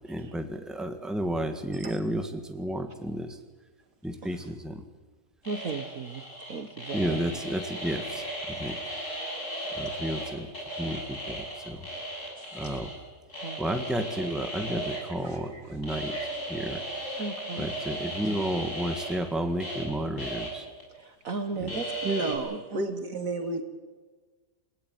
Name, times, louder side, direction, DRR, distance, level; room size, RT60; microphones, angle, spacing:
voice 1, 0.1-3.4 4.0-4.8 6.9-8.8 9.7-10.5 10.8-11.9 12.5-12.9 13.6-16.1 16.5-16.8 17.6-20.7 21.6-21.7, right 1 dB, ahead, 6 dB, 1.8 m, -32 dB
sound 1, 5.4-10.3 10.5-12.9 13.3-15.0 15.8-19.8 20.2-20.5 20.8-20.9 21.7-22.3, right 1 dB, 45° left, 7.8 m, -36 dB
voice 2, 5.4-7.7 12.6-12.8 13.4-13.9 14.9-15.8 16.1-16.5 17.2-17.7 18.2-18.3 20.9-23.0, right 4 dB, 55° right, 7 dB, 1.7 m, -38 dB
voice 3, 22.0-23.6, right 3 dB, 80° right, 6 dB, 2.7 m, -31 dB
28.5 x 17.5 x 9.5 m, 1.4 s
omnidirectional pair, 1.8 m